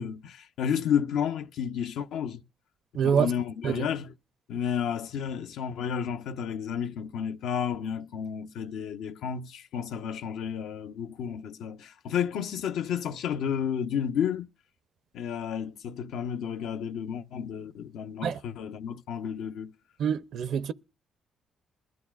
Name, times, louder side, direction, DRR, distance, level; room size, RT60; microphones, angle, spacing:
voice 1, 0.0-2.4 3.0-4.1 4.5-14.5 15.1-19.7, left 8 dB, 85° left, 0.7 m, -31 dB
voice 2, 2.9-3.3 3.6-3.8 18.2-18.4 20.0-20.7, right 7 dB, 70° right, 0.5 m, -26 dB
21.0 x 12.0 x 2.4 m
cardioid pair, 90°, 0 cm